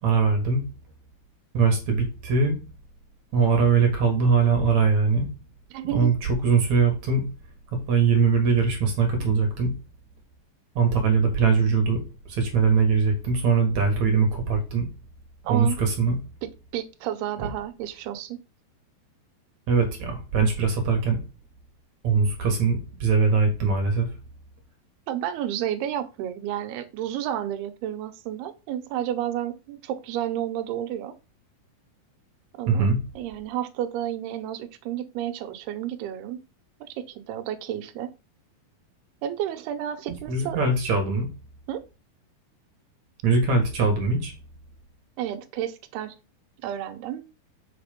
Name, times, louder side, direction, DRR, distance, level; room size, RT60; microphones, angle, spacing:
voice 1, 0.0-0.6 1.5-2.6 3.3-5.3 5.9-7.2 7.9-9.7 10.8-12.0 12.3-14.9 15.5-16.2 17.4-17.5 19.7-21.2 22.0-24.1 32.7-33.0 40.3-41.3 43.2-44.4, right 5 dB, 55° right, 3 dB, 2.5 m, -21 dB
voice 2, 5.7-6.1 15.4-15.8 16.4-18.4 25.1-31.2 32.6-32.9 33.2-36.4 36.8-38.1 39.2-40.6 41.7-41.9 45.2-46.2 46.6-47.2, right 11 dB, 85° right, 11 dB, 2.8 m, -31 dB
7.6 x 4.9 x 5.1 m, 0.31 s
omnidirectional pair, 4.5 m